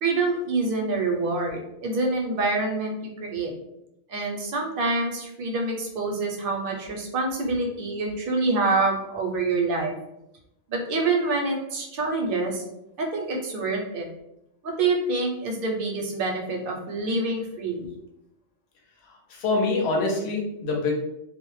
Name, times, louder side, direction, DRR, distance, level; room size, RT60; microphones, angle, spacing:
voice 1, 0.0-2.9 3.2-3.5 4.1-9.9 10.7-12.6 13.0-14.1 14.6-17.9, right 3 dB, 60° right, 0 dB, 0.6 m, -26 dB
voice 2, 19.3-20.9, left 3 dB, 75° left, 0 dB, 0.8 m, -25 dB
2.1 x 2.0 x 3.0 m, 0.85 s
omnidirectional pair, 1.1 m